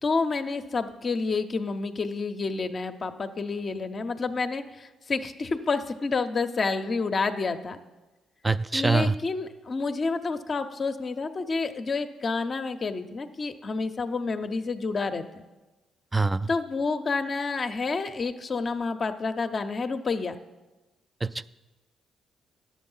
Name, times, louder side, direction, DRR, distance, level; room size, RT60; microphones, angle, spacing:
voice 1, 0.0-7.8 8.7-15.4 16.5-20.4, left 4 dB, 40° left, 7 dB, 0.6 m, -29 dB
voice 2, 8.4-9.1 16.1-16.5 21.2-21.4, right 3 dB, 15° right, 14 dB, 0.3 m, -24 dB
10.5 x 7.4 x 5.5 m, 1.1 s
cardioid pair, 90°, 0 cm